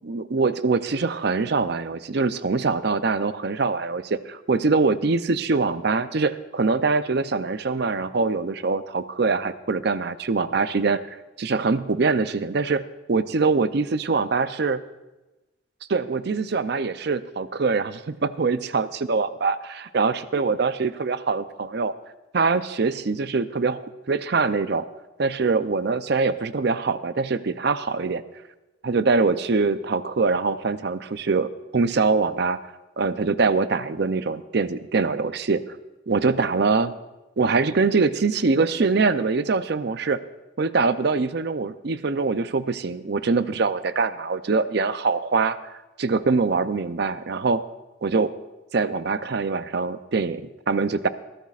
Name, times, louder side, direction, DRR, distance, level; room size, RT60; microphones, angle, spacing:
voice 1, 0.0-14.8 15.9-21.9 22.3-24.8 25.2-28.2 28.8-32.6 33.0-35.6 36.1-36.9 37.4-40.2 40.6-45.6 46.0-47.6 48.0-48.3 48.7-51.1, right 4 dB, 60° right, 12 dB, 0.6 m, -23 dB
21.5 x 14.5 x 2.5 m, 1.1 s
head